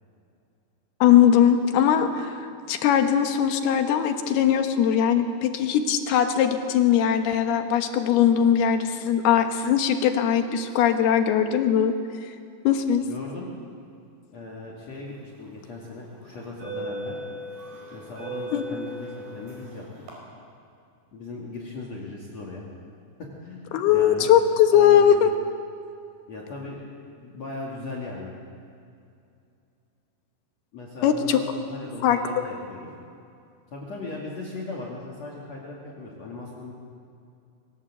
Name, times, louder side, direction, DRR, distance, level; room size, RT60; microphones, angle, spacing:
voice 1, 1.0-11.9 12.6-13.0 18.5-18.6 23.7-25.3 31.0-31.4 32.0-32.4, left 9 dB, 75° left, 6 dB, 3.2 m, -20 dB
voice 2, 13.1-13.5 14.3-17.2 17.9-19.8 21.1-22.6 23.2-24.3 24.7-25.1 26.3-26.8 27.2-28.3 30.7-32.9 33.7-36.7, left 3 dB, 45° left, -2 dB, 3.2 m, -38 dB
sound 1, 15.3-15.6 16.3-20.1, right 1 dB, 75° right, 7.0 m, -37 dB
23.5 x 18.5 x 8.0 m, 2.5 s
omnidirectional pair, 4.8 m